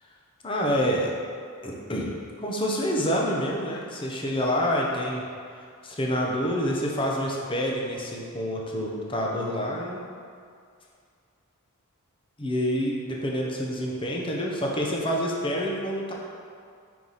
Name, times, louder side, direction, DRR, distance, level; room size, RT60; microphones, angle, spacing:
voice 1, 0.4-1.1 1.6-5.2 5.6-10.0 12.4-16.1, equal, 25° left, -2 dB, 0.7 m, -27 dB
5.5 x 4.7 x 4.0 m, 2.2 s
head